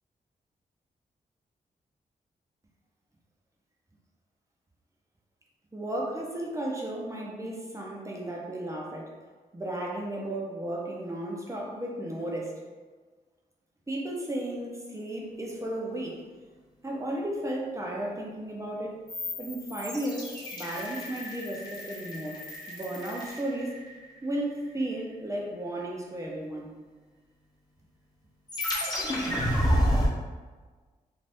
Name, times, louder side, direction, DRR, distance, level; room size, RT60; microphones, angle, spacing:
voice 1, 5.7-9.1 9.5-12.6 13.9-16.2 16.8-19.0 19.4-23.8 24.2-26.8, right 1 dB, 20° right, -2 dB, 0.6 m, -34 dB
sound 1, 19.1-24.1 28.5-30.1, equal, 25° left, 1.0 m, -30 dB
2.6 x 2.5 x 3.3 m, 1.4 s
cardioid pair, 70°, 16 cm